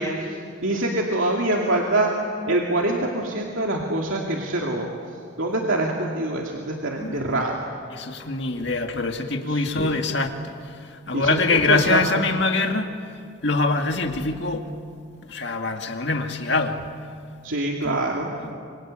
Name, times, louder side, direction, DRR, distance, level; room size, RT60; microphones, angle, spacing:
voice 1, 0.0-2.1 2.5-4.9 5.4-7.6 9.5-10.0 11.1-12.0 17.4-18.6, right 2 dB, 75° right, -1 dB, 2.5 m, -25 dB
voice 2, 7.0-7.4 7.9-10.6 11.1-12.9 13.4-14.6 15.2-16.8 17.8-18.0, left 3 dB, 55° left, 4 dB, 2.0 m, -24 dB
27.5 x 24.5 x 8.8 m, 2.3 s
head